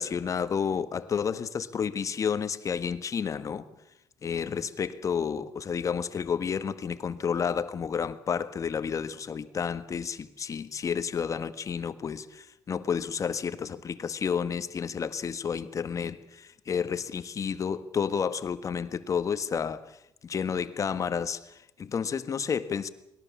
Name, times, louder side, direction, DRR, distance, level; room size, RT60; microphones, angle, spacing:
voice 1, 0.0-3.7 4.2-22.9, left 7 dB, 45° left, 12 dB, 1.5 m, -31 dB
21.5 x 17.5 x 7.2 m, 0.85 s
cardioid pair, 80°, 8 cm